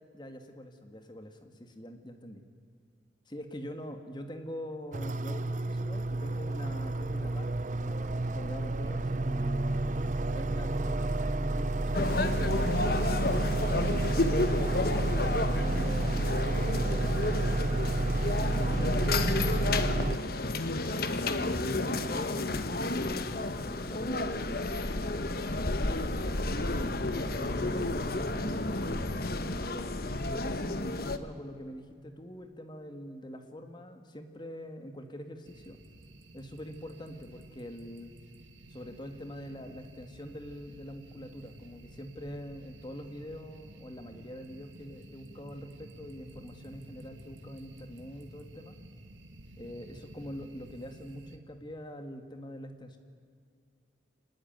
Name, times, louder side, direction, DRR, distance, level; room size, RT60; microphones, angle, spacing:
voice 1, 0.1-2.4 3.3-10.0 10.3-13.0 13.6-17.2 18.6-20.4 21.0-24.8 25.0-25.7 27.0-29.9 30.3-35.8 36.3-38.1 38.7-48.8 49.6-53.0, equal, 25° left, 7 dB, 1.8 m, -44 dB
sound 1, 4.9-20.2, right 2 dB, 40° right, 0.7 m, -30 dB
sound 2, 11.9-31.2, left 2 dB, 55° left, 1.2 m, -31 dB
sound 3, 35.5-51.4, right 1 dB, 90° right, 2.0 m, -52 dB
25.5 x 19.5 x 9.4 m, 2.3 s
head